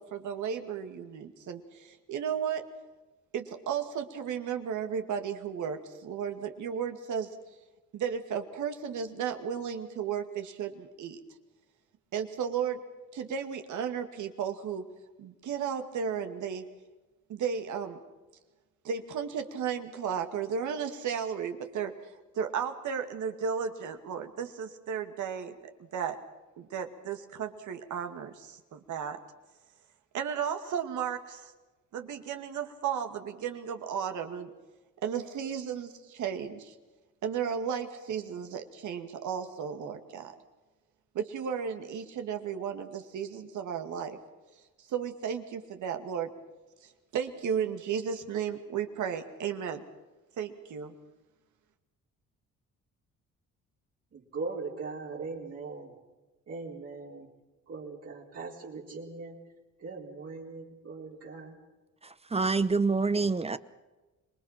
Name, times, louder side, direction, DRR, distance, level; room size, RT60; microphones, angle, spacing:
voice 1, 0.0-2.6 3.3-7.3 7.9-11.2 12.1-12.8 13.1-14.8 15.2-16.6 17.3-18.0 18.8-26.2 26.6-29.2 30.1-31.5 31.9-34.5 35.0-36.7 37.2-40.3 41.1-44.2 44.9-46.3 47.1-49.8 50.4-50.9, right 7 dB, 75° right, 6 dB, 2.3 m, -34 dB
voice 2, 54.3-55.9 56.5-57.3 57.7-59.4 59.8-61.5, right 4 dB, 55° right, -4 dB, 4.3 m, -40 dB
voice 3, 62.0-63.6, right 4 dB, 20° right, 14 dB, 0.9 m, -27 dB
26.0 x 20.5 x 5.9 m, 1.2 s
cardioid pair, 90°, 30 cm